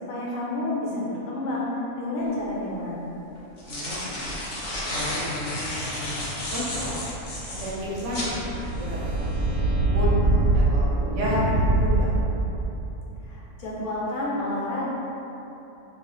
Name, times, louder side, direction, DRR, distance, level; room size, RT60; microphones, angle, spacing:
voice 1, 0.1-1.7 2.0-3.1 13.2-14.8, left 2 dB, 85° left, -6 dB, 1.2 m, -29 dB
sound 1, 2.3-2.4 3.4-8.3, left 1 dB, 55° left, 0.5 m, -32 dB
voice 2, 3.7-4.3 4.9-6.9 7.5-10.9 11.1-12.1, left 1 dB, 65° right, -6 dB, 0.8 m, -32 dB
sound 2, 6.5-12.8, right 2 dB, 90° right, 1.1 m, -24 dB
2.4 x 2.4 x 3.9 m, 3.0 s
omnidirectional pair, 1.5 m